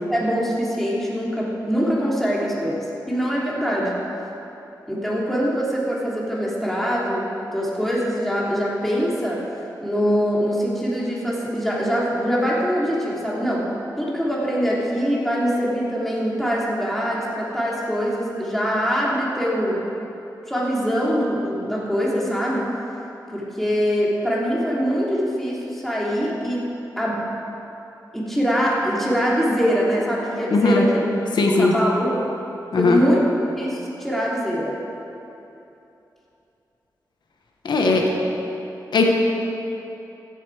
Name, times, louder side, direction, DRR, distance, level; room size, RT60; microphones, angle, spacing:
voice 1, 0.1-4.0 4.9-9.4 9.8-13.7 14.0-19.8 20.5-22.7 23.3-26.6 27.0-27.3 28.1-30.9 31.4-32.2 32.8-33.2 33.5-34.8 37.7-38.2, equal, 5° left, -5 dB, 3.2 m, -23 dB
voice 2, 30.5-30.8 31.4-31.7 32.7-33.0 37.6-38.1 38.9-39.1, left 3 dB, 80° left, 1 dB, 1.3 m, -18 dB
15.0 x 8.3 x 4.9 m, 2.9 s
cardioid pair, 65°, 8 cm